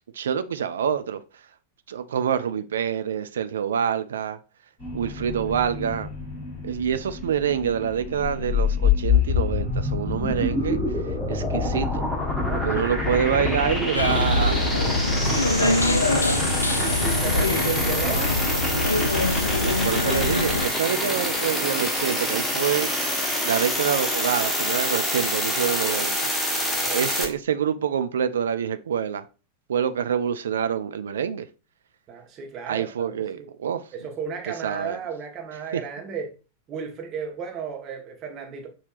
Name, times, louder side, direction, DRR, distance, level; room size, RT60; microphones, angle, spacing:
voice 1, 0.1-1.2 1.9-4.4 4.9-6.1 6.6-10.8 11.3-12.0 12.6-14.6 15.5-15.8 19.6-26.3 26.9-29.2 29.7-31.5 32.7-33.8 34.6-35.0 35.7-35.8, right 8 dB, 65° right, 0.3 m, -26 dB
sound 1, 4.8-17.6, left 1 dB, 35° left, 2.3 m, -40 dB
sound 2, 8.1-27.3, left 2 dB, 10° left, 1.1 m, -25 dB
voice 2, 12.4-13.2 13.6-14.3 16.8-18.3 26.5-27.1 32.1-33.5 33.9-36.3 36.7-38.7, right 6 dB, 30° right, 1.1 m, -34 dB
sound 3, 13.9-20.7, left 2 dB, 80° left, 0.3 m, -24 dB
6.2 x 2.8 x 2.4 m
figure-of-eight pair, 90°, 0 cm